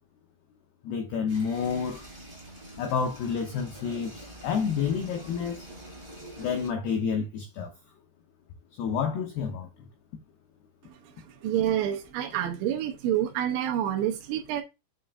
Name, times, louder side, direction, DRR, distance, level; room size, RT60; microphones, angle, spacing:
voice 1, 0.8-2.1 2.8-5.7 6.4-7.7 8.8-9.7, left 6 dB, 85° left, 2.2 m, -29 dB
sound 1, 1.3-6.7, right 1 dB, 30° right, 0.8 m, -46 dB
voice 2, 11.4-14.6, right 11 dB, 80° right, 3.0 m, -28 dB
7.8 x 5.6 x 2.4 m
omnidirectional pair, 5.8 m